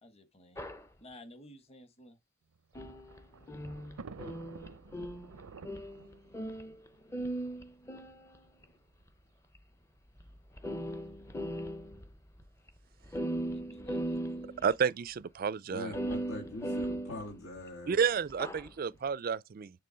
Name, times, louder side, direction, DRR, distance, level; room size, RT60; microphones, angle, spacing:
voice 1, 0.0-0.7 1.0-2.2 11.6-11.7 13.5-14.5, left 1 dB, 30° left, 1.1 m, -54 dB
sound 1, 0.6-0.8 2.7-6.9 7.1-8.6 9.5-9.6 10.2-10.3 10.6-12.1 12.4-12.5 12.7-12.8 13.0-14.7 15.9-17.7 18.3-18.7, right 1 dB, 15° left, 0.5 m, -38 dB
Thunder, 2.5-7.8 8.7-8.8 9.0-9.1 10.2-10.5, right 5 dB, 90° right, 0.5 m, -51 dB
voice 2, 14.6-15.9 17.9-19.7, right 6 dB, 40° right, 0.3 m, -31 dB
voice 3, 15.7-18.0, left 2 dB, 80° left, 1.9 m, -42 dB
6.8 x 3.3 x 5.0 m
head